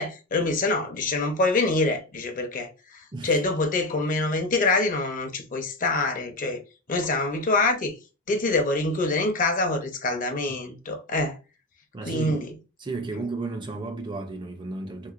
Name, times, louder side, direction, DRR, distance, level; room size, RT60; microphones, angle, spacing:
voice 1, 0.0-2.7 3.2-6.6 6.9-8.0 8.3-11.4 12.0-12.5, left 2 dB, 40° left, 0.7 m, -25 dB
voice 2, 11.9-12.5 12.8-15.1, right 3 dB, 25° right, 0.4 m, -33 dB
3.3 x 3.0 x 2.4 m
head